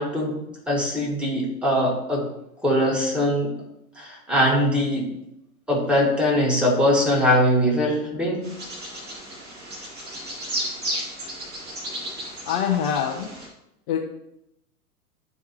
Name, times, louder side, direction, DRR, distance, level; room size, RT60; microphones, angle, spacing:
voice 1, 0.0-2.3 2.6-3.5 4.0-5.1 5.7-8.4, equal, ahead, -3 dB, 1.8 m, -22 dB
Bird vocalization bird call bird song, 8.4-13.5, right 1 dB, 20° right, 2.1 m, -33 dB
voice 2, 12.5-13.3 13.9-14.0, left 8 dB, 35° left, 0 dB, 0.8 m, -24 dB
10.0 x 4.7 x 2.9 m, 0.82 s
figure-of-eight pair, 105°, 45 cm